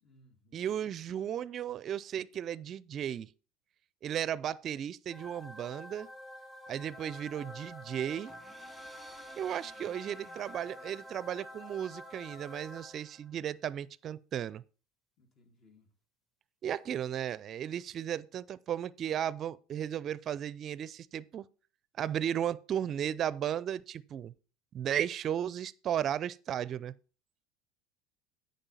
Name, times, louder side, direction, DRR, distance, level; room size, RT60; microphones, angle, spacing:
voice 1, 0.0-0.7 15.2-15.9, left 2 dB, 45° left, 2.5 m, -63 dB
voice 2, 0.5-3.3 4.0-6.1 6.7-8.3 9.4-14.6 16.6-21.4 22.0-24.3 24.7-26.9, right 10 dB, 45° right, 0.5 m, -35 dB
sound 1, 5.1-13.4, left 1 dB, 25° left, 2.4 m, -48 dB
sound 2, 8.3-12.0, right 2 dB, 10° right, 1.4 m, -58 dB
8.9 x 5.3 x 5.6 m
supercardioid pair, 95°, 0 cm